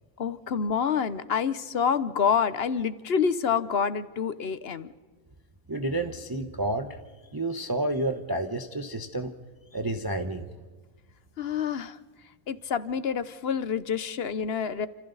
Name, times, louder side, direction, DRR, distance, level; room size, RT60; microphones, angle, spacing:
voice 1, 0.2-4.9 11.4-12.0 12.5-14.9, left 6 dB, 50° left, 14 dB, 1.0 m, -27 dB
voice 2, 5.7-7.0 7.3-9.3 9.7-10.5, right 1 dB, 20° right, 6 dB, 0.9 m, -30 dB
29.5 x 27.0 x 4.0 m, 1.4 s
omnidirectional pair, 1.5 m